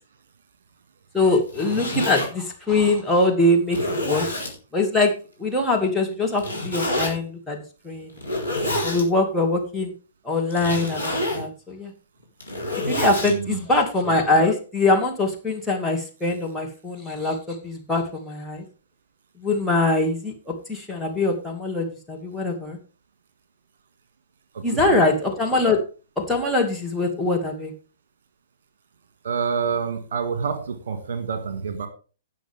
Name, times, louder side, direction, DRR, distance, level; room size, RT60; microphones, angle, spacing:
voice 1, 1.1-3.8 4.0-4.3 4.7-5.1 5.4-7.6 7.8-8.1 8.8-9.9 10.2-11.9 12.8-18.6 19.4-22.8 24.6-25.8 26.2-27.7, left 2 dB, 5° left, -2 dB, 2.3 m, -23 dB
Zipper (clothing), 1.3-2.3 3.0-3.1 3.7-4.5 6.4-7.1 8.1-9.0 10.5-11.4 12.2-13.3, left 1 dB, 90° left, 4.1 m, -27 dB
voice 2, 13.2-13.6 24.5-24.6 24.9-25.0 29.2-31.9, right 6 dB, 55° right, 9 dB, 1.8 m, -27 dB
17.5 x 6.3 x 3.6 m, 0.35 s
figure-of-eight pair, 110°, 0 cm